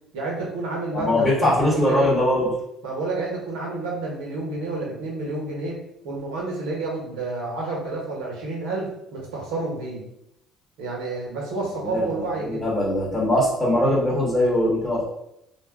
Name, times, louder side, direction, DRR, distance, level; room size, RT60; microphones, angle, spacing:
voice 1, 0.1-2.1 2.8-5.8 6.0-10.0 10.8-12.7, right 2 dB, 85° right, -2 dB, 1.1 m, -30 dB
voice 2, 0.9-2.5 11.8-15.0, left 1 dB, 5° left, -7 dB, 1.2 m, -21 dB
2.5 x 2.3 x 3.6 m, 0.79 s
supercardioid pair, 95°, 0 cm